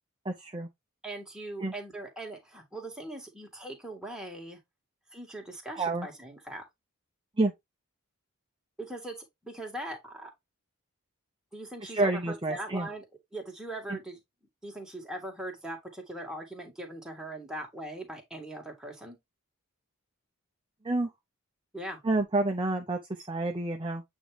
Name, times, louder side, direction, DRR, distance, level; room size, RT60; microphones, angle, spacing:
voice 1, 0.2-0.7 1.6-1.7 5.8-6.1 7.4-7.5 11.9-12.9 13.9-14.0 20.8-21.1 22.0-24.0, right 2 dB, 20° right, 0.6 m, -29 dB
voice 2, 1.0-4.6 5.1-6.6 8.8-9.2 9.4-10.3 11.5-13.0 13.3-14.2 14.6-19.2 21.7-22.0, right 1 dB, 5° right, 1.8 m, -40 dB
8.3 x 3.6 x 3.3 m
head